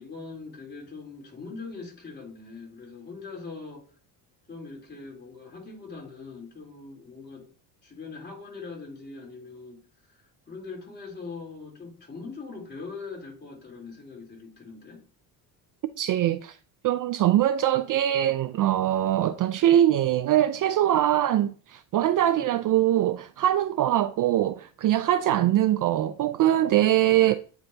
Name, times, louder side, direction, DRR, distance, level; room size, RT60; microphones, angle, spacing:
voice 1, 0.0-3.9 4.5-7.5 7.8-9.8 10.1-15.0 22.3-22.6 25.3-25.6, left 4 dB, 20° left, 3.6 m, -42 dB
voice 2, 16.0-16.6 16.8-27.3, right 12 dB, 45° right, 0.5 m, -22 dB
8.7 x 4.8 x 2.8 m
supercardioid pair, 85°, 46 cm